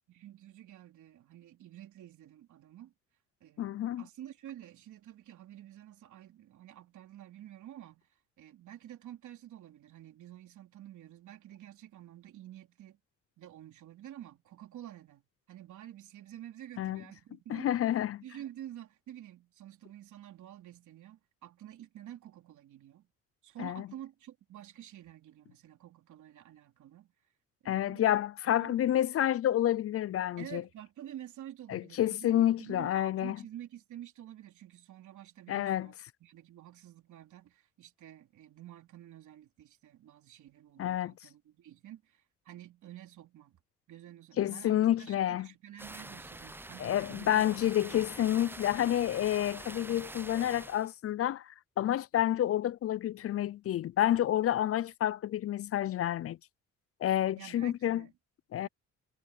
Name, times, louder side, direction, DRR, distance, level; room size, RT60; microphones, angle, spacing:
voice 1, 0.1-2.9 3.4-13.0 13.4-15.2 15.5-18.0 18.2-23.1 23.4-27.1 27.6-28.2 28.6-28.8 30.4-35.9 36.2-43.6 43.9-47.4 47.8-48.3 57.4-58.1 58.6-58.7, right 12 dB, 75° right, 3.6 m, -49 dB
voice 2, 3.6-4.0 16.8-17.0 17.5-18.2 23.6-23.9 27.7-30.6 31.7-33.4 35.5-35.9 40.8-41.1 44.4-45.5 46.8-56.4 57.0-58.0 58.5-58.7, left 12 dB, 50° left, 0.5 m, -29 dB
sound 1, 45.8-50.9, right 2 dB, 5° right, 0.7 m, -45 dB
cardioid pair, 90°, 30 cm